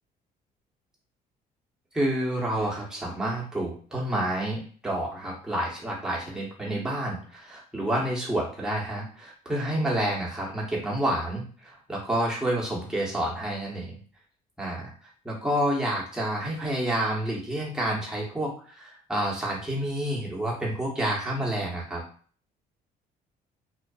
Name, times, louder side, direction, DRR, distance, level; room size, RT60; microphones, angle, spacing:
voice 1, 1.9-14.0 14.6-14.9 15.2-22.0, right 1 dB, 5° right, -4 dB, 1.0 m, -29 dB
2.5 x 2.4 x 2.3 m, 0.43 s
cardioid pair, 110°, 17 cm